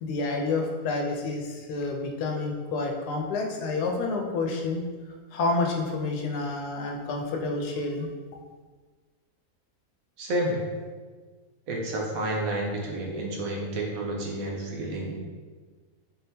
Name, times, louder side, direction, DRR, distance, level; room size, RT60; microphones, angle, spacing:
voice 1, 0.0-4.8 5.3-8.1, left 3 dB, 90° left, 2 dB, 1.2 m, -29 dB
voice 2, 10.2-10.6 11.7-15.2, right 1 dB, 65° right, -1 dB, 1.1 m, -30 dB
4.3 x 3.7 x 2.7 m, 1.4 s
omnidirectional pair, 1.6 m